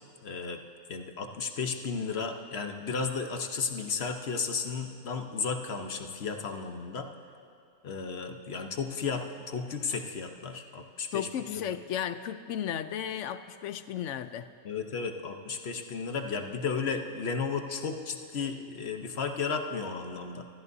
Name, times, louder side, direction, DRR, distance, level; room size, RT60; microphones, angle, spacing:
voice 1, 0.2-0.6 0.9-7.1 7.8-11.7 14.6-20.4, left 5 dB, 60° left, 5 dB, 1.2 m, -34 dB
voice 2, 11.1-14.5, left 9 dB, 85° left, 11 dB, 1.0 m, -34 dB
27.0 x 14.0 x 2.7 m, 2.5 s
omnidirectional pair, 1.2 m